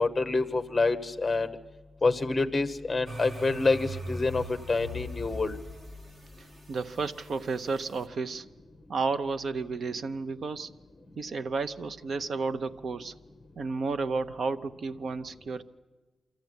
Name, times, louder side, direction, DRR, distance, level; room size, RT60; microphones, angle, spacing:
voice 1, 0.0-1.5 2.0-5.6, left 3 dB, 15° left, 9 dB, 1.0 m, -27 dB
sound 1, 3.1-8.0, equal, 25° right, 1.6 m, -41 dB
voice 2, 6.7-8.5 8.9-10.7 11.2-13.1 13.6-15.6, right 4 dB, 50° right, 10 dB, 0.7 m, -32 dB
25.0 x 14.5 x 9.5 m, 1.3 s
wide cardioid pair, 170°, 0 cm